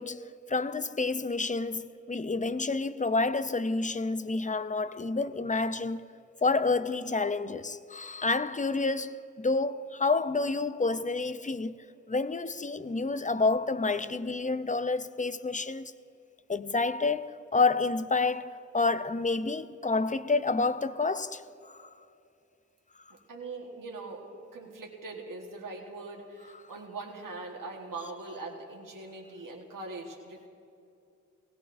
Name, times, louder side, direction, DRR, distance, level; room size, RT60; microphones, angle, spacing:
voice 1, 0.0-6.1 6.4-15.9 16.5-21.9, left 3 dB, 25° left, 0.4 m, -29 dB
voice 2, 23.1-30.5, right 3 dB, 80° right, 1.3 m, -42 dB
18.5 x 16.5 x 2.5 m
cardioid pair, 45°, 32 cm